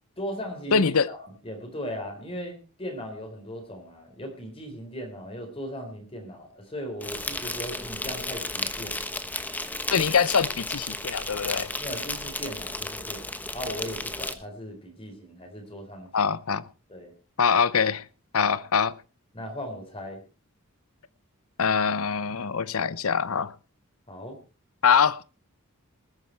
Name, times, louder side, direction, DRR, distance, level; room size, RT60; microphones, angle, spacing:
voice 1, 0.2-1.2 1.4-9.1 11.8-16.1 16.9-17.1 18.4-18.6 19.3-20.2 24.1-24.4, equal, 25° left, 4.0 m, -38 dB
voice 2, 0.7-1.1 9.9-11.7 16.1-16.6 17.4-18.0 18.3-18.9 21.6-23.5 24.8-25.2, left 6 dB, 70° left, 0.7 m, -23 dB
Insect, 7.0-14.3, left 2 dB, 10° left, 1.0 m, -33 dB
20.0 x 9.6 x 4.5 m
head